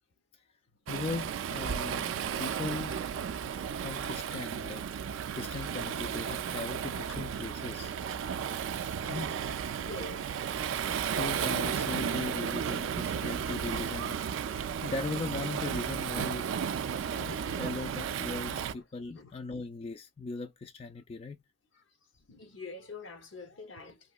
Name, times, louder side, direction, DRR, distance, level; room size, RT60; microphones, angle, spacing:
voice 1, 0.9-3.0 3.8-4.8 5.4-7.9 9.1-9.3 10.6-10.9 11.2-14.2 14.8-16.5 17.1-21.4, left 3 dB, 30° left, 0.3 m, -39 dB
Waves surf, 0.9-18.7, right 7 dB, 85° right, 0.3 m, -34 dB
voice 2, 9.9-10.3 16.7-17.0 17.4-17.6 19.1-19.3 22.3-24.0, left 3 dB, 75° left, 0.8 m, -45 dB
3.0 x 2.8 x 2.3 m
head